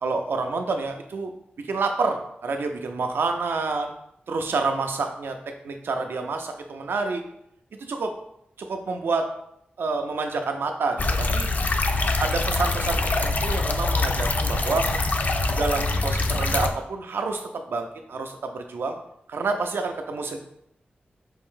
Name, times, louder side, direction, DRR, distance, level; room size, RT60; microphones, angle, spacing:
voice 1, 0.0-1.3 1.7-3.9 4.3-5.4 5.6-7.2 7.8-8.1 8.7-9.3 9.8-11.5 12.2-14.9 15.5-19.0 19.3-20.4, right 4 dB, 80° right, 4 dB, 0.4 m, -28 dB
sound 1, 11.0-16.7, left 3 dB, 50° left, 0.4 m, -24 dB
5.4 x 2.6 x 3.6 m, 0.75 s
wide cardioid pair, 125°, 4 cm